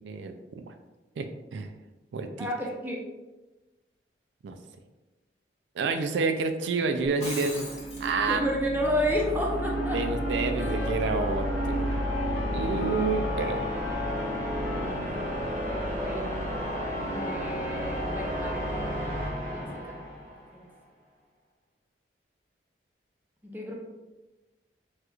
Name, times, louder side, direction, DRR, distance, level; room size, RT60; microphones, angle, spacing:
voice 1, 0.0-0.7 1.2-1.7 2.1-2.5 4.4-4.6 5.7-7.7 8.0-8.4 9.9-11.9 12.5-13.7, right 4 dB, 85° right, 6 dB, 0.3 m, -29 dB
voice 2, 2.4-3.0 8.3-10.0 10.6-10.9 12.9-13.0 14.8-16.2 17.1-20.0 20.5-20.6 23.4-23.7, equal, 10° right, -2 dB, 0.6 m, -32 dB
Shatter, 7.0-8.1, left 2 dB, 40° left, 1.1 m, -38 dB
sound 1, 7.4-20.5, equal, 45° right, 0.8 m, -31 dB
Trumpet, 9.7-15.9 16.2-17.0, left 4 dB, 75° left, 0.3 m, -44 dB
4.3 x 2.4 x 2.4 m, 1.1 s
head